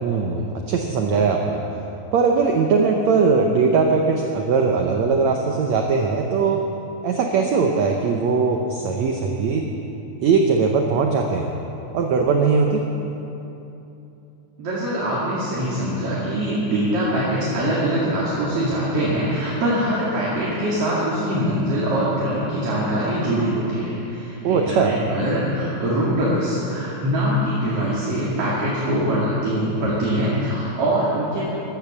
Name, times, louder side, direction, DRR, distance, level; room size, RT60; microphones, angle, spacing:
voice 1, 0.0-1.6 2.1-6.6 7.0-9.7 10.2-11.5 11.9-12.8 24.4-24.9, right 5 dB, 75° right, 2 dB, 1.6 m, -20 dB
voice 2, 14.6-31.5, right 1 dB, 45° right, -7 dB, 2.8 m, -23 dB
13.5 x 12.0 x 7.2 m, 2.9 s
omnidirectional pair, 4.3 m